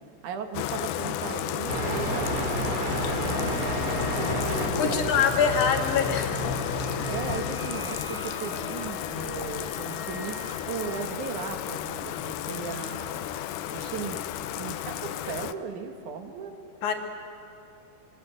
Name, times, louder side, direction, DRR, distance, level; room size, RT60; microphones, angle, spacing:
voice 1, 0.2-3.7 4.1-5.1 7.1-13.3 13.7-16.6, right 6 dB, 70° right, 6 dB, 2.8 m, -37 dB
Bathtub (filling or washing), 0.5-15.5, left 12 dB, 85° left, 2.3 m, -33 dB
sound 1, 1.7-7.4, equal, 40° right, 3.8 m, -31 dB
Wind instrument woodwind instrument, 3.2-11.1, right 2 dB, 20° right, 2.5 m, -44 dB
voice 2, 4.8-6.5 16.8-16.9, left 6 dB, 70° left, 3 dB, 3.3 m, -24 dB
24.0 x 23.5 x 8.0 m, 2.7 s
omnidirectional pair, 3.6 m